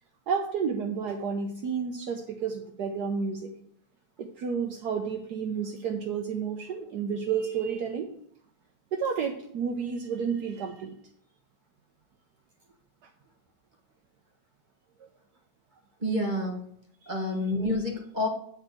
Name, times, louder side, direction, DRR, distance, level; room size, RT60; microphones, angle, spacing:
voice 1, 0.3-3.5 4.2-8.1 8.9-11.0 15.0-15.1, right 6 dB, 70° right, 3 dB, 1.3 m, -31 dB
voice 2, 16.0-16.6 17.1-18.3, left 1 dB, 30° right, 0 dB, 1.4 m, -28 dB
8.7 x 4.5 x 7.4 m, 0.65 s
omnidirectional pair, 1.9 m